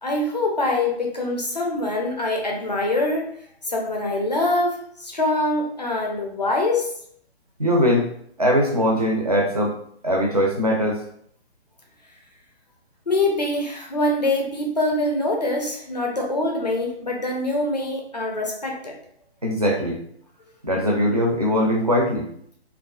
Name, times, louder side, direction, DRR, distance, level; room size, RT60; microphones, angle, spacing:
voice 1, 0.0-3.3 3.6-6.9 13.1-18.9, left 2 dB, 40° left, 0 dB, 0.4 m, -24 dB
voice 2, 7.6-8.1 8.4-9.8 10.0-11.0 19.4-20.0 20.6-22.3, equal, 35° right, -1 dB, 0.4 m, -21 dB
2.4 x 2.3 x 2.2 m, 0.66 s
hypercardioid pair, 180°, 33 cm